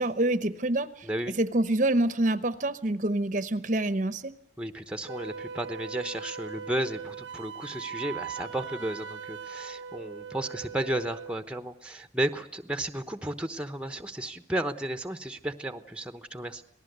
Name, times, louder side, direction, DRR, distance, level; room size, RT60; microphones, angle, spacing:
voice 1, 0.0-1.1 1.4-4.3, right 1 dB, 40° right, 13 dB, 0.9 m, -26 dB
voice 2, 1.0-1.4 4.6-16.6, right 1 dB, 5° right, 9 dB, 1.0 m, -33 dB
Wind instrument woodwind instrument, 5.1-11.4, right 6 dB, 85° right, 1.0 m, -40 dB
27.0 x 19.0 x 8.1 m, 0.67 s
head